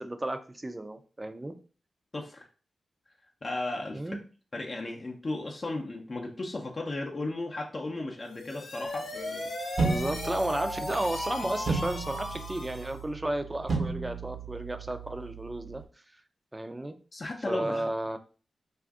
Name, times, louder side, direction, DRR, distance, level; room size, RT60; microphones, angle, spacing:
voice 1, 0.0-1.6 3.9-4.2 9.8-15.8 16.5-17.0 17.5-18.2, right 1 dB, 20° right, 8 dB, 0.4 m, -33 dB
voice 2, 2.1-2.4 3.4-4.0 4.5-9.5 17.1-17.9, left 2 dB, 45° left, 0 dB, 0.6 m, -35 dB
sound 1, 8.2-13.0, left 2 dB, 75° left, 0.9 m, -36 dB
sound 2, 9.8-15.8, right 4 dB, 70° right, 0.9 m, -34 dB
2.5 x 2.4 x 3.5 m, 0.37 s
cardioid pair, 50°, 0 cm